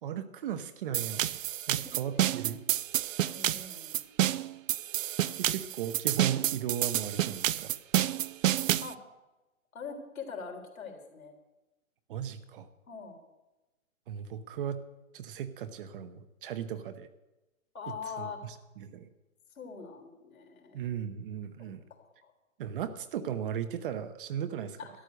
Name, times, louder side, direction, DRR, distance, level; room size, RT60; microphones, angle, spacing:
voice 1, 0.0-1.2 1.7-2.6 5.4-7.7 12.1-12.7 14.1-14.8 15.1-17.1 18.2-19.1 20.7-21.8 22.6-24.8, right 9 dB, 40° right, 11 dB, 0.9 m, -36 dB
sound 1, 0.9-8.9, right 12 dB, 65° right, 0.6 m, -29 dB
voice 2, 1.6-2.4 3.3-4.0 8.8-9.0 9.7-11.3 12.9-13.2 17.7-18.4 19.6-20.8 21.6-21.7 22.0-22.3 24.8-24.9, left 5 dB, 75° left, 2 dB, 3.7 m, -43 dB
12.5 x 10.5 x 6.7 m, 1.0 s
hypercardioid pair, 145°, 42 cm